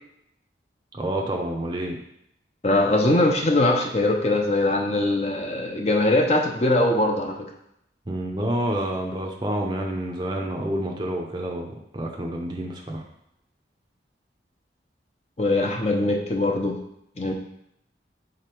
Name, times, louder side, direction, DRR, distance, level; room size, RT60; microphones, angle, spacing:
voice 1, 0.9-2.0 8.1-13.0, right 1 dB, 25° right, 0 dB, 0.6 m, -28 dB
voice 2, 2.6-7.5 15.4-16.8 17.2-17.3, left 2 dB, 35° left, 2 dB, 0.7 m, -21 dB
5.2 x 4.1 x 4.5 m, 0.77 s
head